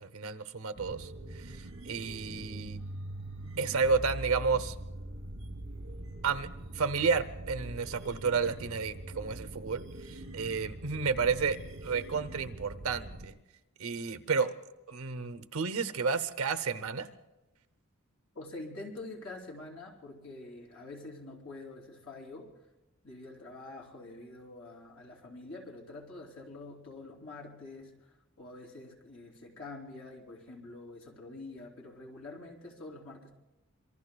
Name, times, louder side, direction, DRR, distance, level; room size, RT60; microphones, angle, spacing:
voice 1, 0.0-2.8 3.6-4.7 6.2-6.5 6.7-11.6 11.8-13.3 13.8-14.5 14.9-17.1, right 5 dB, 85° right, 11 dB, 0.8 m, -31 dB
sound 1, 0.8-13.3, right 1 dB, 65° right, 3.0 m, -43 dB
voice 2, 18.3-22.5 23.0-33.3, left 2 dB, 85° left, -1 dB, 3.4 m, -46 dB
26.5 x 24.0 x 2.3 m, 1.0 s
head